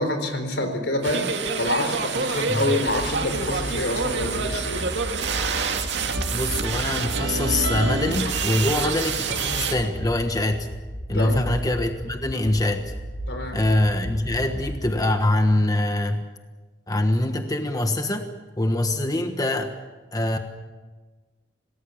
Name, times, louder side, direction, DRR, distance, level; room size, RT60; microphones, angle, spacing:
voice 1, 0.0-4.8 11.1-11.5 13.3-13.6, left 1 dB, 80° left, 7 dB, 4.1 m, -27 dB
sound 1, 1.0-9.8, right 4 dB, 80° right, 2.3 m, -27 dB
sound 2, 2.9-14.9, equal, 55° left, 5.9 m, -35 dB
voice 2, 6.3-10.7 11.1-12.9 13.5-16.3 16.9-18.3 18.6-19.7 20.1-20.4, left 1 dB, 20° left, 6 dB, 1.3 m, -24 dB
27.0 x 19.0 x 7.2 m, 1.3 s
head